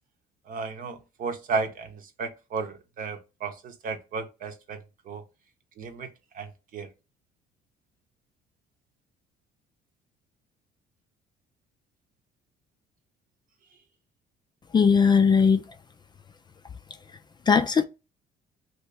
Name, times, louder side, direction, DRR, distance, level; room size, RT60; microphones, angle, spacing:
voice 1, 0.5-5.2 5.8-6.1 6.3-6.9, right 4 dB, 55° right, 0.9 m, -34 dB
voice 2, 14.7-15.6 17.5-17.8, left 6 dB, 25° left, 0.4 m, -19 dB
2.9 x 2.8 x 3.2 m
cardioid pair, 110°, 17 cm